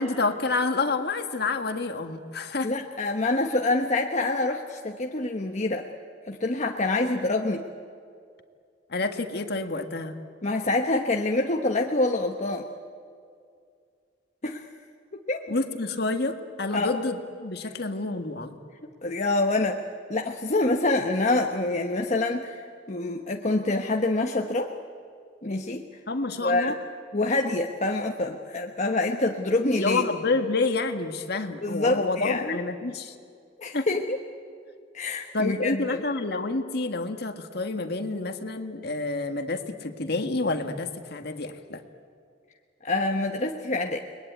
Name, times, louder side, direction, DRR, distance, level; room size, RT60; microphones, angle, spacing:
voice 1, 0.0-2.7 8.9-10.2 15.5-18.6 26.1-26.7 29.8-33.1 33.7-33.9 35.3-41.8, left 3 dB, 60° left, 6 dB, 1.8 m, -28 dB
voice 2, 2.6-5.9 6.3-7.6 10.4-12.7 14.4-14.7 15.1-15.4 16.7-17.0 17.6-17.7 19.0-19.8 20.1-24.7 25.4-25.9 26.4-26.7 27.1-30.0 31.6-32.6 33.6-34.2 34.9-36.0 42.8-44.0, left 2 dB, 40° left, 2 dB, 1.1 m, -26 dB
30.0 x 21.5 x 9.3 m, 2.3 s
head